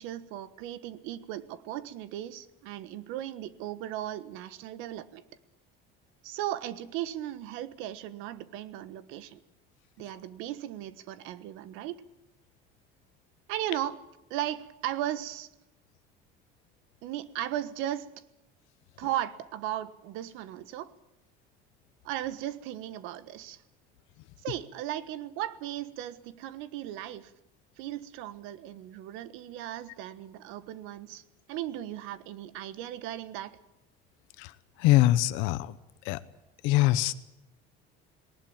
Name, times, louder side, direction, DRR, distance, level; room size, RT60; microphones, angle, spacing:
voice 1, 0.0-5.2 6.2-9.4 10.0-12.0 13.5-14.0 14.3-15.5 17.0-18.1 19.0-20.9 22.0-23.6 24.4-27.3 27.8-31.2 31.5-33.6, right 12 dB, 80° right, 15 dB, 1.4 m, -36 dB
voice 2, 34.4-35.8 36.0-36.2 36.6-37.1, left 15 dB, 75° left, 14 dB, 0.9 m, -24 dB
19.0 x 19.0 x 8.7 m, 0.90 s
cardioid pair, 180°, 20 cm